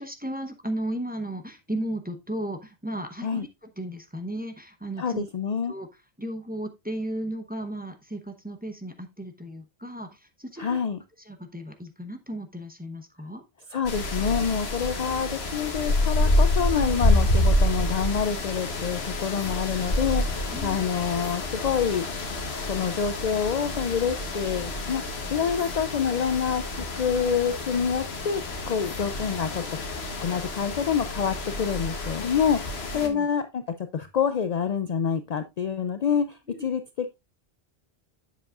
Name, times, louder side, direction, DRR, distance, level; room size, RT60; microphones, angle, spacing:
voice 1, 0.0-5.3 5.7-5.9 6.2-10.8 11.3-13.4 20.5-20.8 32.9-33.3 36.5-36.7, right 1 dB, 10° right, 6 dB, 0.8 m, -35 dB
voice 2, 5.0-5.7 10.6-11.0 13.7-22.2 22.7-25.0 25.3-28.4 28.7-29.6 30.2-33.6 33.9-37.1, left 7 dB, 55° left, 10 dB, 0.5 m, -27 dB
sound 1, 13.9-33.1, left 1 dB, 85° left, 1.4 m, -28 dB
7.9 x 7.1 x 2.4 m, 0.22 s
omnidirectional pair, 1.0 m